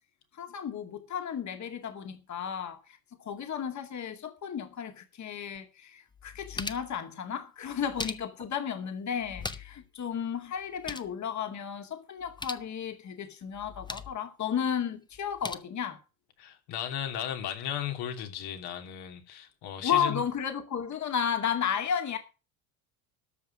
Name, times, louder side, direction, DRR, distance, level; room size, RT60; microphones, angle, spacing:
voice 1, 0.4-16.0 19.8-22.2, left 8 dB, 40° left, 2.3 m, -33 dB
sound 1, 5.5-5.6 6.1-7.0 7.7-8.6 9.2-9.9 10.1-10.2 10.6-11.1 12.2-12.7 13.5-14.2 15.1-15.5, left 3 dB, 10° left, 1.0 m, -40 dB
voice 2, 16.4-20.2, left 10 dB, 65° left, 2.9 m, -35 dB
13.0 x 5.7 x 7.1 m
hypercardioid pair, 80°, 42 cm